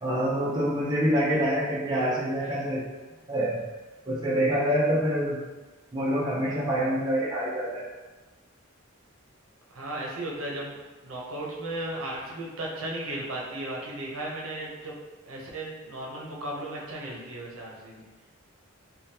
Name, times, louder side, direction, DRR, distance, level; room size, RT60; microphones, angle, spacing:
voice 1, 0.0-2.8 3.3-3.6 4.1-5.4 5.9-7.8, equal, 20° right, -6 dB, 0.5 m, -26 dB
voice 2, 9.7-10.8 11.0-14.9 15.3-18.1, right 1 dB, 80° right, -3 dB, 0.7 m, -35 dB
3.4 x 2.2 x 2.7 m, 1.3 s
head